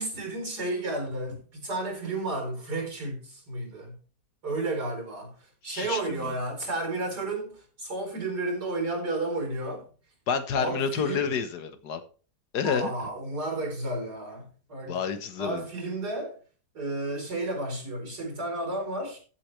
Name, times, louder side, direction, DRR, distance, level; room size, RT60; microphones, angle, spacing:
voice 1, 0.0-3.9 4.4-5.4 5.6-9.9 10.5-11.3 12.6-15.0 15.4-16.3 16.7-19.2, right 2 dB, 70° right, 4.8 m, -32 dB
voice 2, 5.7-6.3 10.3-12.0 12.5-12.9 14.9-15.6, left 6 dB, 75° left, 1.7 m, -29 dB
15.5 x 7.6 x 3.3 m
omnidirectional pair, 1.8 m